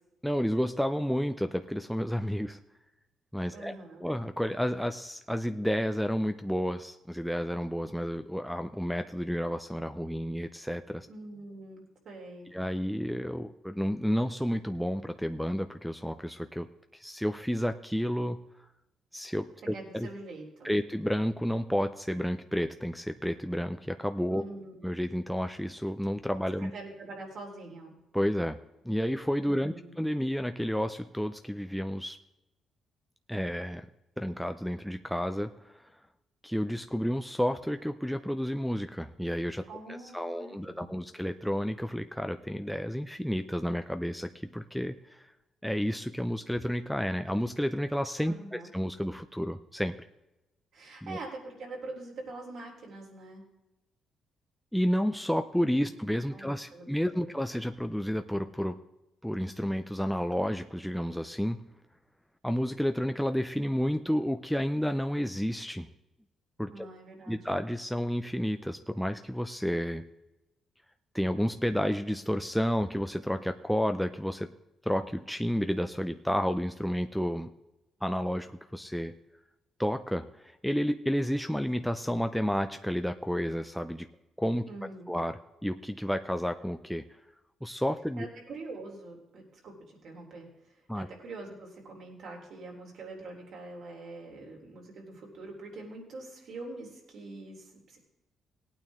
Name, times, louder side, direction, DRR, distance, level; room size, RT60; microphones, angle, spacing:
voice 1, 0.2-2.6 3.3-3.7 4.0-11.1 12.5-16.7 16.9-18.4 19.1-20.1 20.6-24.4 24.8-26.7 28.1-28.6 28.8-32.2 33.3-33.9 34.2-35.9 36.4-45.3 45.6-49.9 51.0-51.2 54.7-58.8 59.2-61.6 62.4-65.9 66.6-66.9 67.3-70.0 71.1-74.5 74.8-77.5 78.0-79.1 79.8-84.1 84.4-84.6 85.1-87.1 87.6-88.3 90.9-91.1, equal, ahead, 7 dB, 0.5 m, -31 dB
voice 2, 3.5-4.1 11.1-12.5 19.7-20.7 24.3-24.8 26.6-27.9 29.4-29.9 39.7-41.1 48.2-48.7 50.7-53.4 55.8-55.9 56.3-56.9 57.2-57.3 66.7-67.5 84.7-85.2 88.2-98.0, right 2 dB, 65° right, 0 dB, 3.6 m, -44 dB
17.5 x 9.1 x 3.6 m, 0.96 s
cardioid pair, 90°, 0 cm